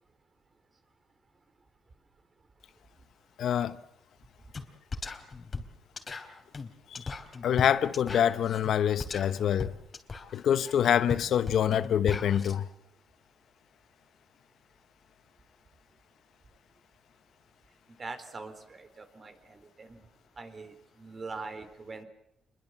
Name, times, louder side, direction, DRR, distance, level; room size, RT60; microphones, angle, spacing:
voice 1, 3.4-3.8 6.9-7.1 7.4-9.7 10.2-12.7, left 9 dB, 70° left, 1.0 m, -26 dB
sound 1, 4.5-4.7 4.9-12.5, left 4 dB, 35° left, 3.4 m, -38 dB
voice 2, 18.0-20.0 20.4-22.1, right 3 dB, 35° right, 4.0 m, -43 dB
27.5 x 22.0 x 7.5 m
cardioid pair, 90°, 0 cm